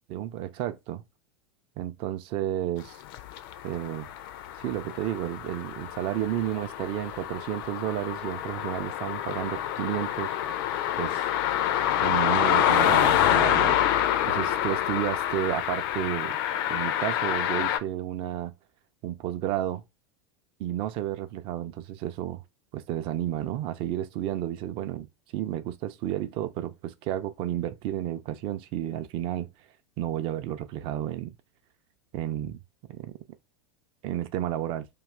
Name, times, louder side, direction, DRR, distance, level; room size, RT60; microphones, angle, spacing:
voice 1, 0.1-1.0 1.8-3.0 3.6-4.1 4.6-10.4 11.0-11.2 12.0-13.8 14.3-16.4 16.7-18.5 19.0-19.8 20.6-22.4 22.7-25.1 25.3-29.5 30.0-31.4 32.1-32.6 32.9-33.2 34.0-34.9, right 12 dB, 40° right, 0.4 m, -31 dB
sound 1, 3.1-17.8, left 11 dB, 50° left, 0.4 m, -27 dB
2.5 x 2.4 x 3.2 m
figure-of-eight pair, 90°, 15 cm